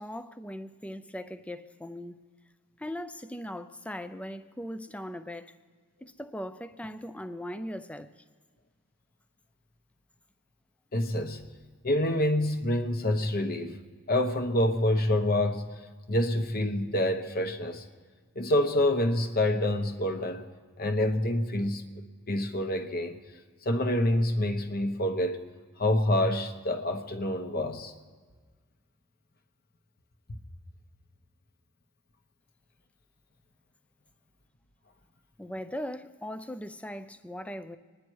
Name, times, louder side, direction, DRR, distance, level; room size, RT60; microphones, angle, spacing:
voice 1, 0.0-2.2 2.8-5.5 6.0-8.1 35.4-37.8, equal, 5° left, 0.5 m, -39 dB
voice 2, 10.9-11.5 11.8-13.8 14.1-15.8 16.1-17.8 18.3-20.4 20.8-21.8 22.3-23.2 23.6-25.5 25.8-27.9 30.3-30.4, left 1 dB, 45° left, 1.0 m, -27 dB
25.0 x 10.0 x 4.6 m
head